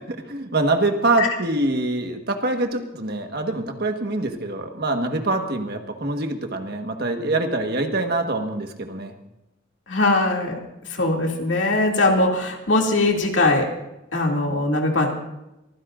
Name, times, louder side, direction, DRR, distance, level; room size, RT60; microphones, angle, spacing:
voice 1, 0.1-9.1, right 2 dB, 55° right, 5 dB, 1.4 m, -24 dB
voice 2, 9.9-13.7 14.1-15.1, left 2 dB, 80° left, 0 dB, 2.6 m, -21 dB
23.5 x 15.0 x 2.6 m, 0.92 s
head